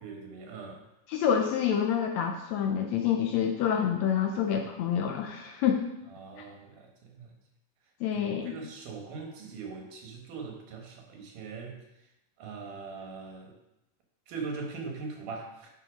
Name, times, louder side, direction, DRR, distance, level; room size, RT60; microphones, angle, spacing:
voice 1, 0.0-0.8 6.1-7.3 8.1-11.8 12.4-13.5 14.3-15.7, right 4 dB, 85° right, 2 dB, 2.9 m, -41 dB
voice 2, 1.1-5.8 8.0-8.5, left 8 dB, 75° left, 3 dB, 1.7 m, -27 dB
11.0 x 4.0 x 5.1 m, 0.88 s
omnidirectional pair, 3.6 m